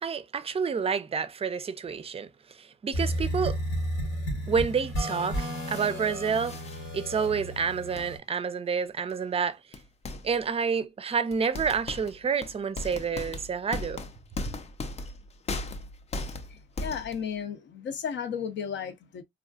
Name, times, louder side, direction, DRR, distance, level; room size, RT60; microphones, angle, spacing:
voice 1, 0.0-2.3 2.6-3.6 4.5-6.5 6.9-9.6 10.2-14.0, right 6 dB, 30° right, 0.5 m, -29 dB
sound 1, 2.9-8.2, equal, 85° left, 1.7 m, -32 dB
sound 2, 5.3-5.9 6.3-6.8 8.0-8.1 9.1-9.2 9.7-10.4 11.3-17.3, left 2 dB, 35° left, 0.5 m, -37 dB
voice 2, 16.5-19.2, left 7 dB, 65° left, 0.7 m, -34 dB
3.5 x 2.4 x 2.3 m
cardioid pair, 90°, 20 cm